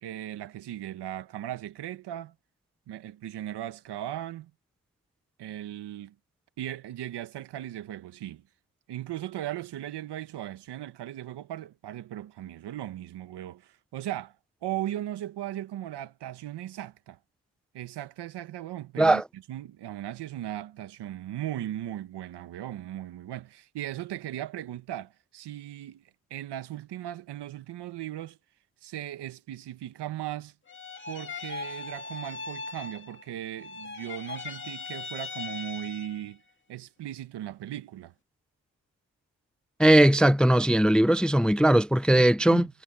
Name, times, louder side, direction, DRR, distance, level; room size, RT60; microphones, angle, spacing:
voice 1, 0.0-2.3 2.9-4.5 5.4-6.1 6.6-8.4 8.9-14.3 14.6-17.2 17.7-19.2 19.5-26.0 26.3-28.4 28.8-30.5 31.1-36.4 36.7-38.1 42.2-42.7, right 12 dB, 85° right, 1.4 m, -37 dB
sound 1, 30.7-33.3 33.6-36.3, left 4 dB, 30° left, 2.4 m, -39 dB
voice 2, 39.8-42.7, right 1 dB, ahead, 0.4 m, -19 dB
cardioid pair, 75°, 39 cm